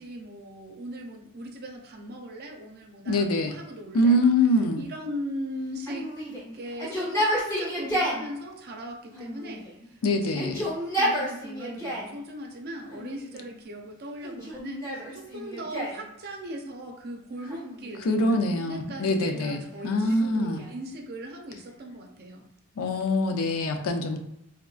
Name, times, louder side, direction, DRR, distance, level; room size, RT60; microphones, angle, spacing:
voice 1, 0.0-4.3 4.7-6.1 6.5-10.5 11.0-22.4, equal, 50° right, 1 dB, 0.5 m, -39 dB
voice 2, 3.1-3.5 3.9-4.8 10.0-10.5 18.0-20.6 22.8-24.2, left 1 dB, 90° left, 5 dB, 0.5 m, -24 dB
Yell, 5.9-8.2 9.1-9.9 10.3-12.1 12.9-13.5 14.2-16.0 17.4-18.3 19.1-20.8, equal, 15° left, 1.0 m, -31 dB
3.6 x 2.2 x 2.4 m, 0.84 s
head